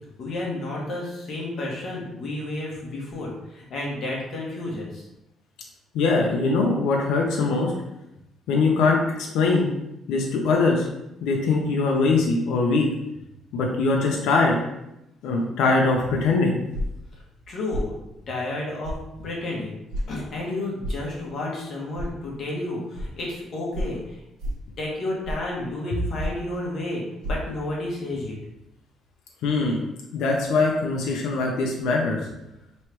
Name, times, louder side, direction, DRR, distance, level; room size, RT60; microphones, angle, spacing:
voice 1, 0.2-5.1 17.5-17.9 18.3-19.0 19.2-19.8 20.1-24.2 24.8-28.4, left 2 dB, 45° left, -3 dB, 1.1 m, -31 dB
voice 2, 5.9-7.7 8.5-9.7 10.1-10.9 11.2-12.9 13.5-14.6 15.2-16.6 29.4-29.8 30.1-32.2, left 3 dB, 85° left, 0 dB, 0.7 m, -22 dB
sound 1, 16.7-17.0 17.7-17.9 18.8-19.0 19.9-20.1 20.8-21.0 22.0-22.1 22.9-23.1 23.7-23.9 24.4-24.7 25.2-25.5 26.2-26.5 27.2-27.3, equal, 90° right, 1.1 m, -29 dB
3.1 x 3.1 x 4.6 m, 0.88 s
cardioid pair, 175°, 0 cm